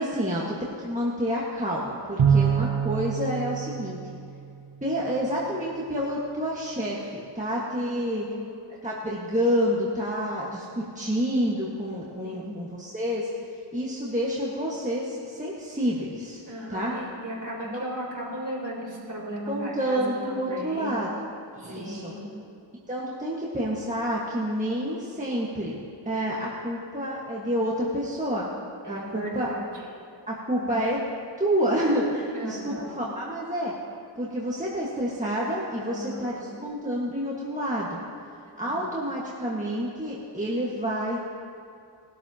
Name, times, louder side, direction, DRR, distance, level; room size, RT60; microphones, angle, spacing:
voice 1, 0.0-4.2 4.8-8.3 8.8-13.3 13.7-16.4 16.7-16.9 17.7-17.8 19.5-21.1 21.5-22.1 22.9-28.5 28.9-29.5 30.3-31.0 31.4-33.7 34.2-38.0 38.5-41.3, equal, 15° right, -5 dB, 1.5 m, -28 dB
Bowed string instrument, 2.2-4.8, right 7 dB, 85° right, 1.0 m, -25 dB
voice 2, 7.8-8.5 12.2-12.7 16.5-21.0 21.6-22.3 28.8-29.7 30.5-30.7 32.3-33.1 35.8-36.6 38.6-39.0, right 1 dB, 40° right, -4 dB, 3.6 m, -36 dB
19.5 x 12.5 x 2.9 m, 2.5 s
wide cardioid pair, 85°, 45 cm